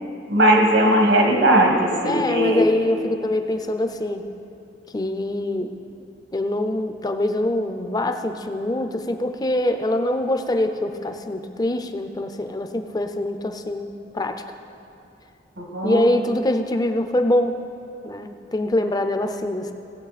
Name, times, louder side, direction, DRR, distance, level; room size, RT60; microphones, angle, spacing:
voice 1, 0.3-2.7 15.6-16.0, right 1 dB, 80° right, 1 dB, 1.6 m, -18 dB
voice 2, 2.0-4.3 4.9-5.7 6.3-14.4 15.8-17.5 18.0-19.7, left 1 dB, 20° left, 7 dB, 0.5 m, -24 dB
16.5 x 7.9 x 4.1 m, 2.7 s
head